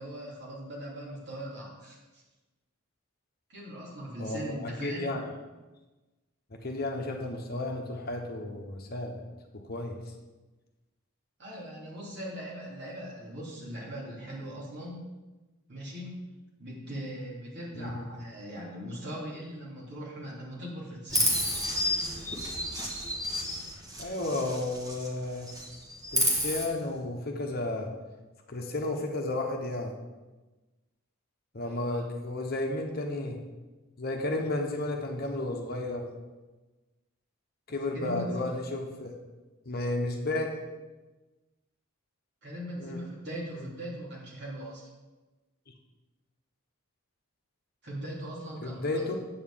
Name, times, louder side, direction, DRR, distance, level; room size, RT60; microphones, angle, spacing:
voice 1, 0.0-2.2 3.5-5.1 11.4-15.1 15.7-16.2 16.6-21.3 31.6-32.0 37.9-38.5 42.4-44.9 47.8-49.0, equal, 50° right, -5 dB, 2.9 m, -40 dB
voice 2, 4.2-5.2 6.5-9.2 9.5-10.0 17.7-18.1 24.0-25.5 26.1-27.9 28.5-29.9 31.5-33.4 34.0-36.1 37.7-39.1 39.7-40.5 42.8-43.0 48.6-49.2, left 2 dB, 45° left, 2 dB, 1.1 m, -33 dB
Chirp tweet, 21.1-25.1 25.4-26.6, equal, 15° right, 1.5 m, -30 dB
8.6 x 4.6 x 7.4 m, 1.2 s
head